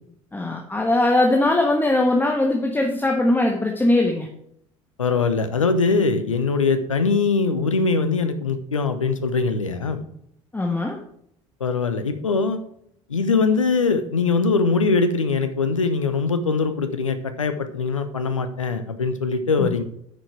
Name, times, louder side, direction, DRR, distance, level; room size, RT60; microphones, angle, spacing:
voice 1, 0.3-4.3 10.5-11.0 19.6-19.7, left 2 dB, 10° left, 1 dB, 1.3 m, -20 dB
voice 2, 5.0-10.0 11.6-12.6 13.1-19.8, left 4 dB, 85° left, 9 dB, 0.9 m, -22 dB
9.5 x 6.4 x 4.6 m, 0.71 s
figure-of-eight pair, 65°, 16 cm